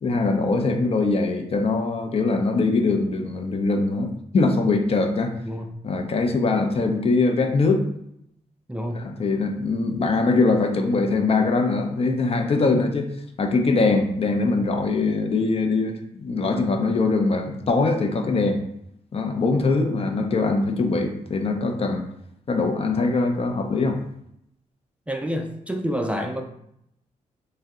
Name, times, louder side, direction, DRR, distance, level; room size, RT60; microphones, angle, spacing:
voice 1, 0.0-5.3 5.8-7.9 8.9-13.1 13.4-18.6 19.1-22.1 22.5-24.0, left 3 dB, 45° left, 4 dB, 0.5 m, -22 dB
voice 2, 25.1-26.4, equal, 10° right, 2 dB, 0.3 m, -28 dB
2.7 x 2.1 x 3.6 m, 0.75 s
cardioid pair, 65°, 14 cm